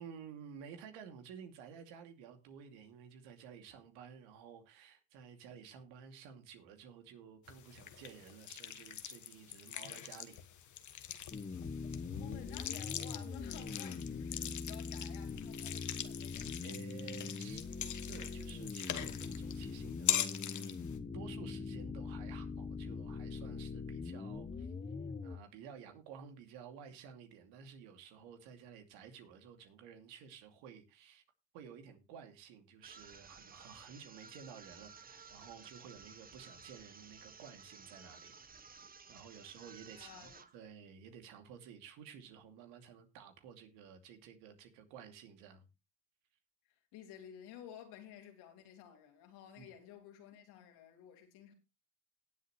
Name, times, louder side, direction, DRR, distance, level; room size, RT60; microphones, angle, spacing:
voice 1, 0.0-10.4 16.6-17.7 18.1-20.8 21.1-24.7 25.2-31.2 31.5-38.4 39.1-45.7 49.6-49.7, right 7 dB, 80° right, 2.6 m, -53 dB
sound 1, 7.5-21.0, left 10 dB, 50° left, 1.4 m, -42 dB
sound 2, 11.3-25.4, left 4 dB, 20° left, 1.1 m, -43 dB
voice 2, 12.2-16.6 39.9-40.7 46.9-51.5, left 9 dB, 75° left, 3.3 m, -53 dB
sound 3, 32.8-40.6, right 5 dB, 20° right, 1.1 m, -56 dB
18.0 x 7.7 x 3.1 m
supercardioid pair, 80°, 39 cm